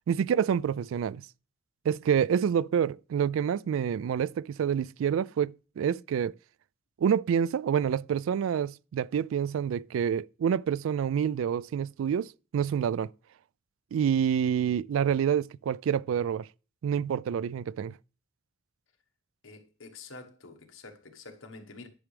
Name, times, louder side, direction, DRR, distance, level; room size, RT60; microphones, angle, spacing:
voice 1, 0.1-1.2 1.9-6.3 7.0-13.1 13.9-16.5 16.8-17.9, right 8 dB, 85° right, 0.3 m, -27 dB
voice 2, 19.4-21.9, left 3 dB, 80° left, 1.3 m, -47 dB
10.5 x 6.1 x 3.3 m
head